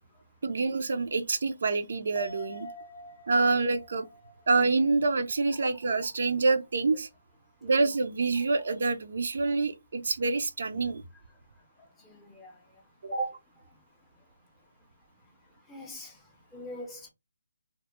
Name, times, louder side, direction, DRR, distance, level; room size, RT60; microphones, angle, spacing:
voice 1, 0.4-2.7 3.3-4.1 4.5-7.1 7.6-11.0, right 3 dB, 60° right, 0.4 m, -26 dB
sound 1, 2.2-5.9 6.2-6.3, left 1 dB, 65° left, 0.6 m, -47 dB
voice 2, 12.0-12.6 13.1-13.4 15.7-16.2 16.5-17.1, right 2 dB, 10° left, 0.5 m, -39 dB
2.1 x 2.0 x 2.9 m
hypercardioid pair, 160°, 0 cm